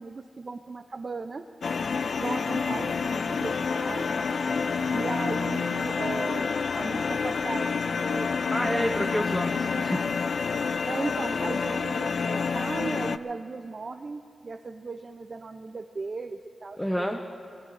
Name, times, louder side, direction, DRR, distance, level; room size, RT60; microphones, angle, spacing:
voice 1, 0.0-1.4 2.2-4.1 4.9-8.3 8.6-8.9 10.9-17.2, right 3 dB, 45° right, 6 dB, 0.6 m, -36 dB
sound 1, 1.6-13.2, left 5 dB, 65° left, 0.4 m, -28 dB
voice 2, 8.5-10.1 16.8-17.2, equal, 5° left, 2 dB, 0.8 m, -29 dB
24.5 x 20.5 x 2.6 m, 2.7 s
wide cardioid pair, 100°, 0 cm